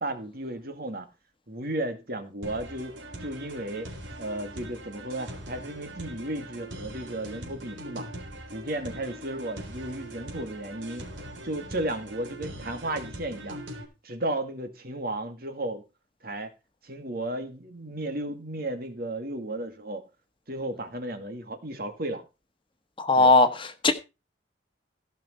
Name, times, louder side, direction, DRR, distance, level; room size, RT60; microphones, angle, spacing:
voice 1, 0.0-1.1 1.5-2.9 3.2-3.9 4.2-8.1 8.5-11.0 11.4-13.6 14.0-15.8 16.2-16.5 16.8-20.0 20.5-22.2 23.1-23.3, right 1 dB, 55° right, 2.1 m, -34 dB
sound 1, 2.4-13.8, right 1 dB, 85° right, 3.8 m, -41 dB
voice 2, 23.0-23.9, left 3 dB, 25° left, 1.3 m, -19 dB
16.5 x 6.1 x 5.5 m
head